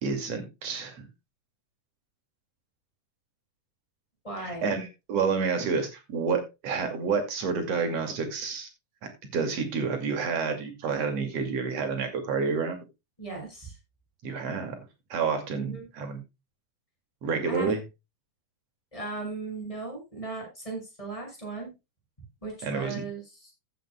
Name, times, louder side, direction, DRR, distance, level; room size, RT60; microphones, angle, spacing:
voice 1, 0.0-1.1 4.4-8.7 9.0-12.8 14.2-16.2 17.2-17.8 22.6-23.0, right 5 dB, 55° right, 6 dB, 3.4 m, -29 dB
voice 2, 4.2-4.7 13.2-13.7 15.6-15.9 17.4-17.7 18.9-21.7 22.4-23.2, right 3 dB, 10° left, 0 dB, 6.3 m, -37 dB
15.0 x 9.3 x 2.3 m, 0.25 s
omnidirectional pair, 3.6 m